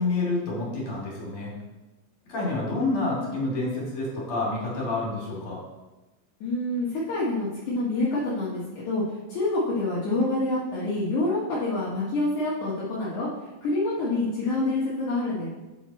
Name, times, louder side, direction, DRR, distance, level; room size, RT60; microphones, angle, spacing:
voice 1, 0.0-1.5 2.3-5.6, left 2 dB, 35° left, -4 dB, 2.6 m, -28 dB
voice 2, 6.4-9.0 9.3-13.3 13.6-15.5, left 2 dB, 70° left, -8 dB, 1.8 m, -27 dB
8.5 x 7.0 x 4.2 m, 1.1 s
omnidirectional pair, 5.9 m